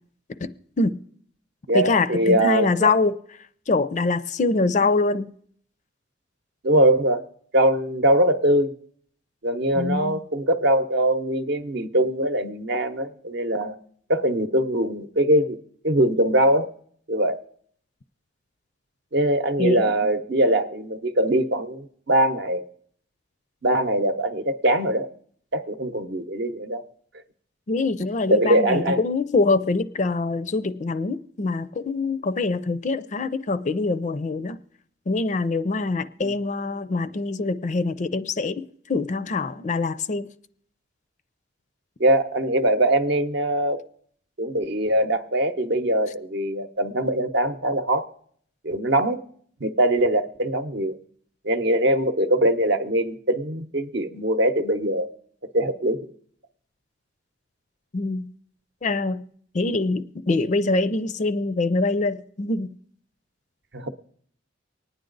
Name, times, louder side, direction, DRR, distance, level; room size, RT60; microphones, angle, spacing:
voice 1, 0.4-1.0 1.7-3.2 3.7-5.3 9.7-10.2 19.6-19.9 27.7-34.6 35.1-40.3 57.9-58.3 58.8-59.2 59.5-62.7, left 3 dB, 40° left, 0.4 m, -24 dB
voice 2, 1.7-2.9 4.8-4.9 6.6-7.2 7.5-8.7 9.4-13.8 14.1-15.6 15.8-16.7 17.1-17.4 19.1-22.6 23.6-25.1 25.5-26.8 28.3-29.0 36.2-36.3 42.0-43.8 44.4-48.0 48.6-49.2 49.6-51.0 51.4-55.1 55.5-56.0 63.7-63.9, right 1 dB, 60° right, 0.8 m, -22 dB
24.5 x 9.6 x 3.9 m
head